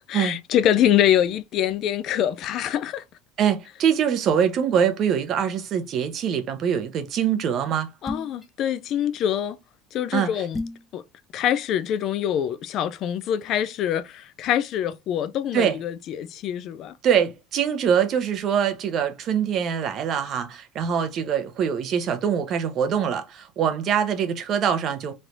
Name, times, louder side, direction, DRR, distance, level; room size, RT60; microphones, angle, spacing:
voice 1, 0.0-3.0 8.0-9.6 9.9-10.6 10.9-11.0 11.3-16.9, left 10 dB, 45° left, 0.3 m, -24 dB
voice 2, 3.4-7.9 10.1-10.5 15.5-15.8 17.0-25.1, right 8 dB, 40° right, 0.7 m, -23 dB
sound 1, 8.1-8.5 10.5-10.9, left 2 dB, 10° left, 0.8 m, -32 dB
3.2 x 2.6 x 4.4 m
cardioid pair, 150°, 0 cm